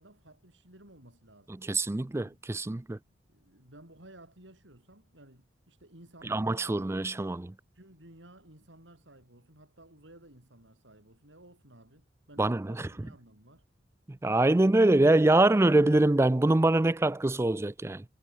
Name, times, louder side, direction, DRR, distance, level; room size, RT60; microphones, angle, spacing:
voice 1, 0.0-1.5 2.2-2.4 3.1-7.1 7.7-13.7, right 1 dB, 85° right, 7.7 m, -55 dB
voice 2, 1.6-3.0 6.3-7.5 12.4-12.9 14.1-18.0, right 2 dB, 15° right, 0.4 m, -24 dB
head